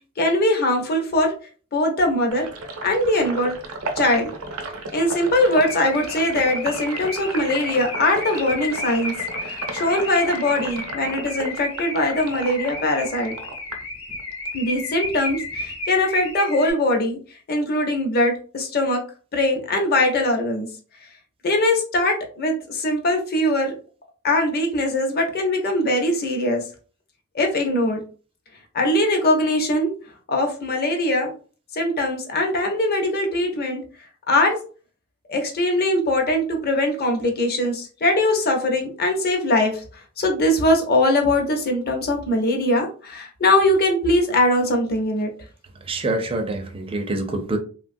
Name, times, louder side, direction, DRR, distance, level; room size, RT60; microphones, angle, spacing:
voice 1, 0.2-1.3 1.7-2.5 2.8-3.5 4.0-4.3 4.9-9.1 9.4-13.3 14.5-17.2 17.5-19.0 19.3-20.7 21.4-23.7 24.2-26.6 27.3-28.0 28.7-29.9 30.3-31.3 31.7-33.8 34.3-34.6 35.3-45.3, left 1 dB, 45° left, 0.6 m, -21 dB
Sink (filling or washing), 2.3-14.6 14.9-16.3, right 2 dB, 75° right, 0.6 m, -35 dB
Car / Alarm, 5.6-16.7, left 2 dB, 75° left, 1.0 m, -33 dB
voice 2, 45.8-47.6, right 2 dB, 25° right, 0.4 m, -26 dB
3.1 x 2.2 x 2.5 m
head